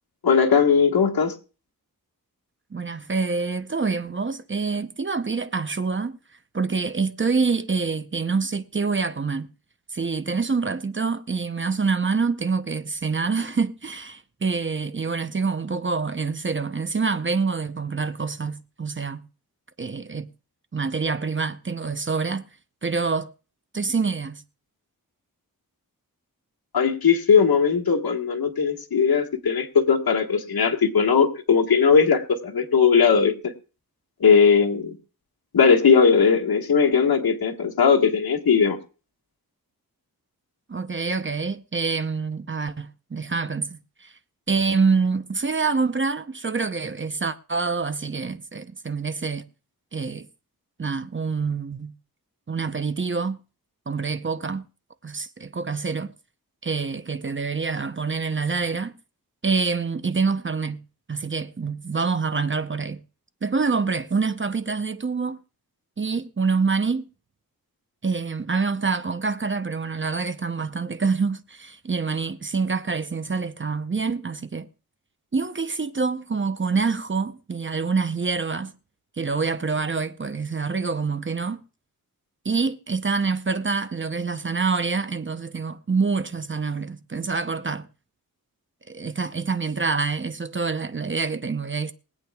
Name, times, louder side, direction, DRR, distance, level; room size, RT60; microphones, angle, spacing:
voice 1, 0.2-1.3 26.7-33.3 34.2-35.0 35.5-38.8, left 6 dB, 80° left, 1.6 m, -19 dB
voice 2, 2.7-6.2 6.5-9.5 9.9-19.2 19.8-20.3 20.7-22.5 22.8-23.3 23.7-24.4 40.7-44.1 44.5-49.4 49.9-50.3 50.8-51.9 52.5-53.4 53.9-54.6 55.0-56.1 56.6-58.9 59.4-60.8 61.1-63.0 63.4-65.4 66.0-67.1 68.0-74.7 75.3-78.7 79.2-81.6 82.4-87.9 88.9-91.9, right 4 dB, 35° right, 0.7 m, -26 dB
23.0 x 8.5 x 2.3 m
wide cardioid pair, 80°, 36 cm